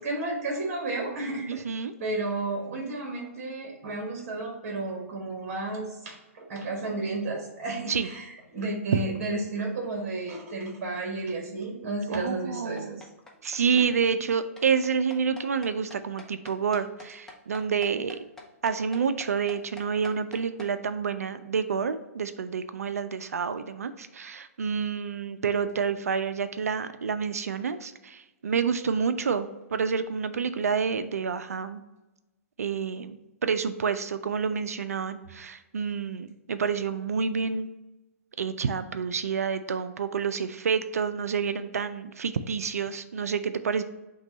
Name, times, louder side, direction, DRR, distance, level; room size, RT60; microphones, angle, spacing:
voice 1, 0.0-1.6 2.0-13.1 13.7-13.8, right 2 dB, 45° right, 0 dB, 1.2 m, -32 dB
voice 2, 1.5-1.9 7.9-8.1 12.1-13.0 13.4-18.2 18.6-31.8 32.6-37.7 38.4-43.8, right 6 dB, 80° right, 11 dB, 0.4 m, -28 dB
sound 1, 12.8-20.7, left 2 dB, 5° left, 0.6 m, -46 dB
5.9 x 2.3 x 3.9 m, 1.0 s
hypercardioid pair, 125°, 8 cm